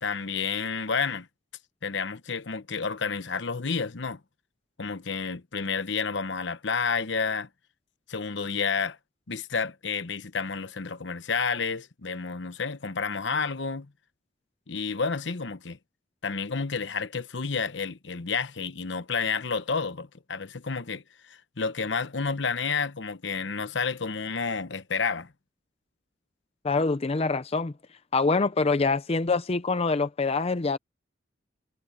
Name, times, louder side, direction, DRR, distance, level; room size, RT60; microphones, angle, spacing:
voice 1, 0.0-1.3 1.8-4.2 4.8-7.5 8.1-9.0 9.3-13.9 14.7-15.8 16.2-25.3, left 5 dB, 65° left, 1.0 m, -30 dB
voice 2, 26.6-27.7 28.1-30.8, left 3 dB, 30° left, 0.6 m, -25 dB
head